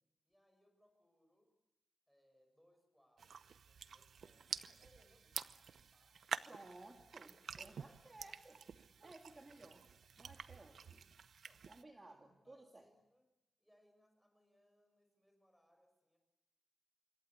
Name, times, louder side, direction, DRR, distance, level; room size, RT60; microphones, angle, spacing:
voice 1, 0.2-1.5 2.1-6.6 7.5-8.4 10.3-10.4 11.4-13.3 13.6-16.2, equal, ahead, 5 dB, 6.9 m, -74 dB
sound 1, 3.2-11.8, right 6 dB, 80° right, 0.8 m, -49 dB
voice 2, 6.5-8.6 9.0-9.9 10.2-11.1 11.7-12.9, right 2 dB, 25° right, 2 dB, 2.6 m, -58 dB
26.0 x 23.0 x 8.3 m, 0.99 s
wide cardioid pair, 130°, 0 cm